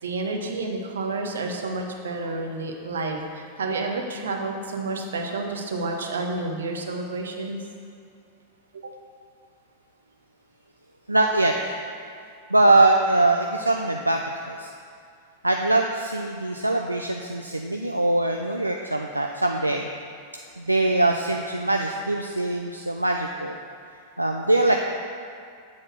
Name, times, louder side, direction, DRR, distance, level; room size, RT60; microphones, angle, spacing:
voice 1, 0.0-7.6 8.7-8.9, right 3 dB, 65° right, 2 dB, 0.9 m, -30 dB
voice 2, 11.1-11.8 12.5-14.2 14.5-14.7 15.4-19.9 20.6-23.6 24.2-24.7, right 2 dB, 85° right, 3 dB, 0.3 m, -22 dB
7.7 x 4.2 x 6.2 m, 2.3 s
figure-of-eight pair, 90°, 0 cm